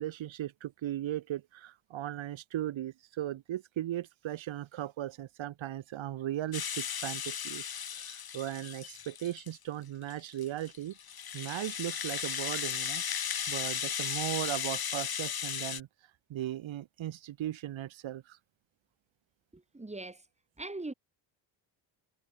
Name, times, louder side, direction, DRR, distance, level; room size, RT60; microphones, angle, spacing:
voice 1, 0.0-11.0 11.3-13.0 13.5-15.9 16.3-18.4, right 13 dB, 70° right, 4.6 m, -37 dB
Rattle (instrument), 6.5-9.6 10.1-15.8, left 8 dB, 50° left, 6.9 m, -36 dB
voice 2, 19.5-20.2 20.6-20.9, right 2 dB, 15° right, 6.7 m, -41 dB
cardioid pair, 105°, 47 cm